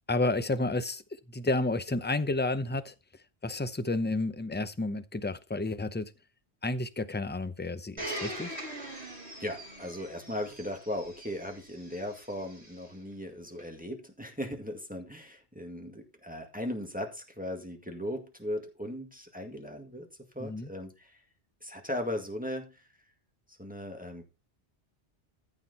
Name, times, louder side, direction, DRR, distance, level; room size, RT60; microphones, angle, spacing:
voice 1, 0.1-2.9 3.4-6.1 6.6-8.6 20.4-20.7, left 2 dB, 10° left, 0.6 m, -31 dB
Domestic sounds home sounds, 8.0-12.8 13.6-13.7, right 1 dB, 35° right, 4.3 m, -42 dB
voice 2, 9.4-20.1 20.3-21.2 21.6-22.8 23.5-24.3, left 1 dB, 10° right, 1.8 m, -38 dB
14.0 x 5.9 x 4.2 m
omnidirectional pair, 1.1 m